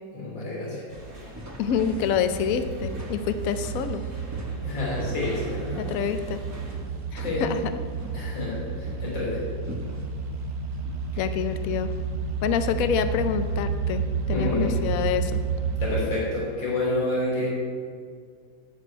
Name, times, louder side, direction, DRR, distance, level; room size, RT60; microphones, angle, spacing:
voice 1, 0.1-0.8 4.6-5.8 7.2-7.4 8.1-9.4 14.3-14.8 15.8-17.5, left 2 dB, 80° left, -6 dB, 4.1 m, -28 dB
sound 1, 0.9-13.6, right 1 dB, 20° right, 0.5 m, -44 dB
sound 2, 0.9-6.8, right 1 dB, 65° right, 3.4 m, -45 dB
voice 2, 1.6-4.0 5.8-6.4 7.1-7.7 11.2-11.9 12.4-15.4, left 7 dB, 60° left, 10 dB, 1.0 m, -27 dB
sound 3, 1.6-16.0, right 5 dB, 85° right, 1.9 m, -31 dB
12.0 x 5.1 x 8.6 m, 2.2 s
omnidirectional pair, 2.0 m